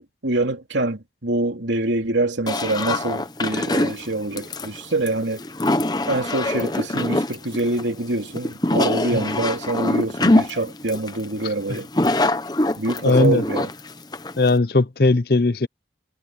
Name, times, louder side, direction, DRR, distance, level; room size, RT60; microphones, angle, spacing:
voice 1, 0.0-5.4 6.1-11.9 12.8-13.7, right 2 dB, 90° right, 3.1 m, -25 dB
sound 1, 2.5-14.6, left 2 dB, 20° left, 0.9 m, -24 dB
voice 2, 13.0-13.4 14.4-15.7, left 3 dB, 55° left, 0.8 m, -18 dB
head